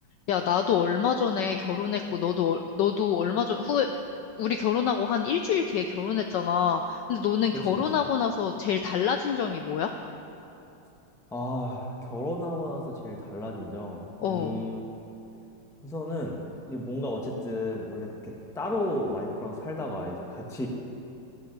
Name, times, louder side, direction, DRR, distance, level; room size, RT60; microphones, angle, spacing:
voice 1, 0.3-3.9 4.4-9.9 14.2-14.6, left 7 dB, 80° left, 6 dB, 1.0 m, -26 dB
voice 2, 7.5-8.1 11.3-14.9 15.8-16.4 16.7-20.7, left 1 dB, 5° left, 0 dB, 0.5 m, -33 dB
15.5 x 11.5 x 4.0 m, 2.9 s
omnidirectional pair, 2.4 m